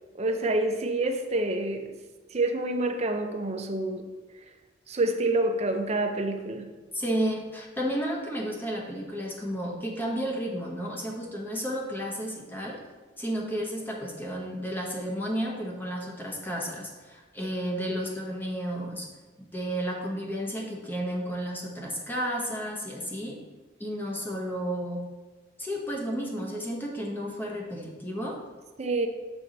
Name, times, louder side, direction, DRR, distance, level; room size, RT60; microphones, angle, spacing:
voice 1, 0.1-1.9 2.3-4.1 4.9-6.7 28.8-29.1, right 2 dB, 35° right, 5 dB, 0.6 m, -27 dB
voice 2, 6.9-12.8 13.2-19.1 19.4-23.4 23.8-25.0 25.6-28.4, equal, 10° left, -1 dB, 1.0 m, -32 dB
7.0 x 4.6 x 3.9 m, 1.2 s
head